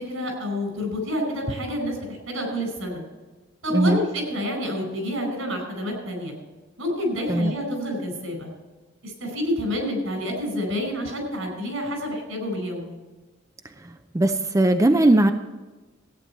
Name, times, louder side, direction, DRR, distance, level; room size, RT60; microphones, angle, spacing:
voice 1, 0.0-3.0 3.6-6.3 6.8-8.5 9.0-13.0, equal, 80° right, 3 dB, 4.8 m, -28 dB
voice 2, 14.1-15.3, right 1 dB, 15° right, 7 dB, 0.5 m, -18 dB
14.5 x 9.3 x 4.4 m, 1.3 s
head